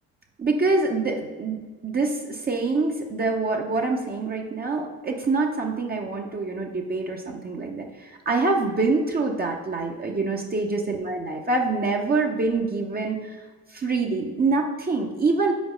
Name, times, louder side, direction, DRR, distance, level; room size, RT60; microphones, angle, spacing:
voice 1, 0.4-1.6 1.8-13.4 13.7-15.5, right 3 dB, 30° right, 1 dB, 0.7 m, -25 dB
5.1 x 4.5 x 5.0 m, 1.3 s
cardioid pair, 90°, 30 cm